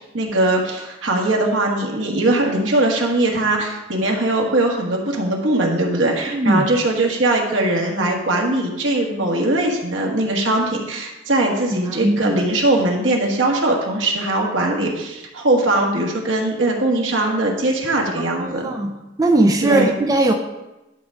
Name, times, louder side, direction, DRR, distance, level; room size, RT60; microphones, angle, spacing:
voice 1, 0.1-18.7 19.6-19.9, right 2 dB, 70° right, 0 dB, 1.5 m, -20 dB
voice 2, 6.3-6.6 12.0-12.2 18.4-18.9 19.2-20.3, right 2 dB, 20° right, 3 dB, 0.4 m, -18 dB
11.0 x 3.7 x 5.2 m, 1.0 s
head